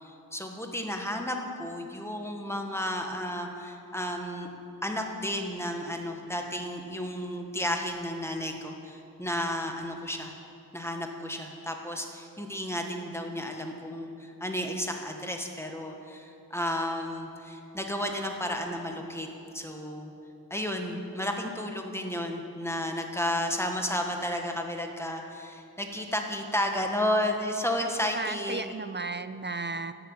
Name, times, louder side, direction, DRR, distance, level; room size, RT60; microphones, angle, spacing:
voice 1, 0.0-4.5 4.8-10.3 10.7-19.3 19.5-20.1 20.5-28.7, left 1 dB, 5° left, 2 dB, 1.5 m, -32 dB
voice 2, 27.8-29.9, right 3 dB, 30° right, 11 dB, 0.5 m, -35 dB
13.5 x 7.9 x 8.9 m, 2.7 s
wide cardioid pair, 70°, 37 cm